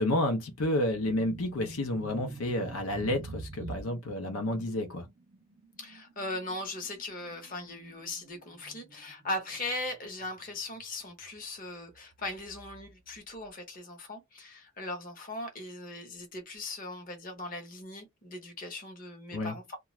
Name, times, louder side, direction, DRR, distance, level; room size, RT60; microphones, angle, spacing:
voice 1, 0.0-5.1 19.3-19.5, left 1 dB, 80° left, 0.6 m, -30 dB
sound 1, 0.9-10.9 11.1-11.4 12.1-13.2, right 3 dB, 40° right, 0.4 m, -47 dB
voice 2, 5.8-19.8, left 2 dB, 40° left, 0.8 m, -39 dB
2.3 x 2.2 x 3.0 m
head